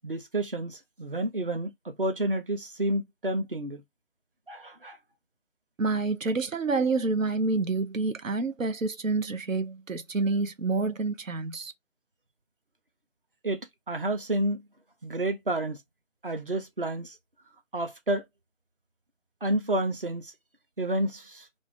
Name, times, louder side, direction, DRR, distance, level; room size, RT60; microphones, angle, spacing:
voice 1, 0.0-3.8 4.5-5.0 13.4-13.6 13.9-14.6 15.0-15.8 16.2-17.1 17.7-18.2 19.4-20.3 20.8-21.5, right 1 dB, 45° right, 0.7 m, -30 dB
voice 2, 5.8-11.7, right 3 dB, 80° right, 0.7 m, -28 dB
2.5 x 2.5 x 3.7 m
figure-of-eight pair, 160°, 39 cm